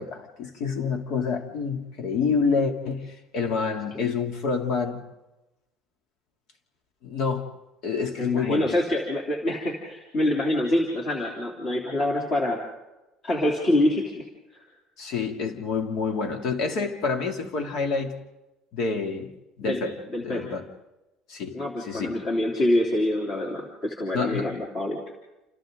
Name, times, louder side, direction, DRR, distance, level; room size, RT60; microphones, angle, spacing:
voice 1, 0.0-5.0 7.0-7.5 7.8-8.7 15.0-18.1 18.7-19.3 19.6-19.9 20.2-20.7 21.3-22.2 24.1-24.5, left 5 dB, 55° left, 4 dB, 2.9 m, -28 dB
voice 2, 8.2-12.6 13.2-14.2 14.5-14.6 19.6-19.8 20.1-20.4 21.5-25.0, left 1 dB, 30° left, -1 dB, 3.4 m, -25 dB
29.0 x 28.0 x 3.9 m, 1.0 s
cardioid pair, 165°, 0 cm